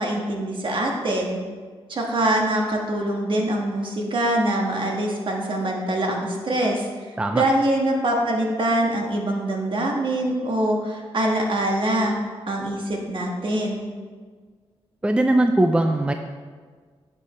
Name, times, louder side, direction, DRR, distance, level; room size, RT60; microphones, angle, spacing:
voice 1, 0.0-1.4 1.9-6.8 7.3-12.2 12.5-13.8, right 1 dB, 55° right, 0 dB, 1.5 m, -24 dB
voice 2, 15.0-16.1, right 1 dB, 10° right, 5 dB, 0.4 m, -20 dB
9.7 x 6.6 x 3.1 m, 1.5 s
cardioid pair, 85°, 10 cm